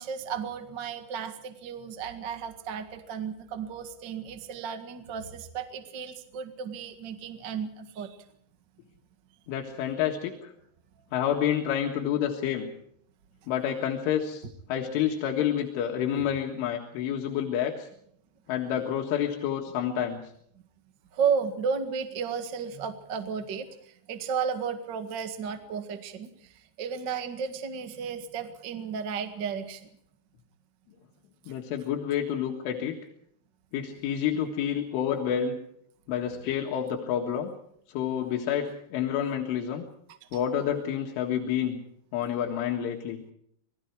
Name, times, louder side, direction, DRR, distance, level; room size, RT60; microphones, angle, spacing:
voice 1, 0.0-8.2 21.1-29.9 31.5-31.6 40.3-40.4, right 6 dB, 60° right, 7 dB, 1.1 m, -33 dB
voice 2, 9.5-10.5 11.1-12.7 13.5-14.4 14.7-17.9 18.5-20.2 31.5-33.0 33.7-35.6 36.1-37.5 37.9-39.8 40.3-41.8 42.1-43.2, left 9 dB, 90° left, 1 dB, 4.2 m, -29 dB
27.5 x 20.5 x 4.8 m, 0.69 s
omnidirectional pair, 5.4 m